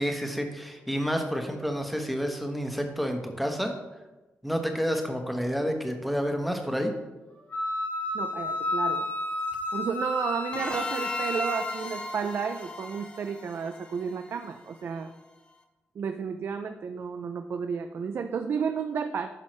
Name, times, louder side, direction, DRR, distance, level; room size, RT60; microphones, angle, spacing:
voice 1, 0.0-3.7 4.4-6.9, equal, ahead, 4 dB, 1.1 m, -29 dB
Wind instrument woodwind instrument, 7.5-11.8, left 2 dB, 40° left, 1.5 m, -31 dB
voice 2, 8.1-9.1 9.7-15.1 16.0-19.3, right 6 dB, 60° right, 7 dB, 0.4 m, -32 dB
sound 1, 10.5-15.0, left 2 dB, 25° left, 0.9 m, -39 dB
10.5 x 5.5 x 3.2 m, 1.1 s
cardioid pair, 85°, 5 cm